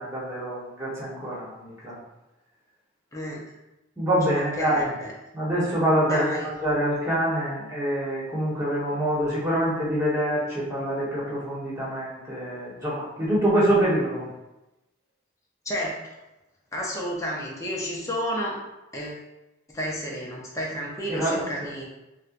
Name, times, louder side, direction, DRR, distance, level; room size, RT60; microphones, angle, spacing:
voice 1, 0.0-1.9 4.0-4.9 5.3-6.3 6.6-14.3 21.1-21.4, right 1 dB, 15° right, -8 dB, 1.1 m, -25 dB
voice 2, 3.1-3.4 4.3-5.1 6.0-6.5 15.6-16.2 16.7-18.6 18.9-19.2 19.7-21.8, equal, 15° left, -4 dB, 0.6 m, -31 dB
4.3 x 2.2 x 2.5 m, 0.97 s
head